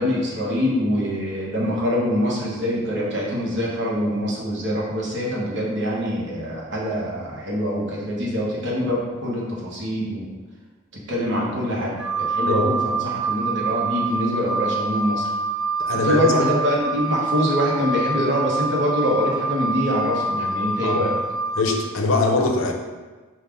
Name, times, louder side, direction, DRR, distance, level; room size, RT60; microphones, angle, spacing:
voice 1, 0.0-10.3 11.1-15.3 15.9-21.2, equal, 60° right, -4 dB, 1.0 m, -24 dB
Wind instrument woodwind instrument, 12.0-21.6, right 3 dB, 5° right, 0.3 m, -26 dB
voice 2, 15.8-16.5 20.8-21.0 21.6-22.7, left 3 dB, 80° left, 2 dB, 0.6 m, -22 dB
5.3 x 2.4 x 3.7 m, 1.3 s
head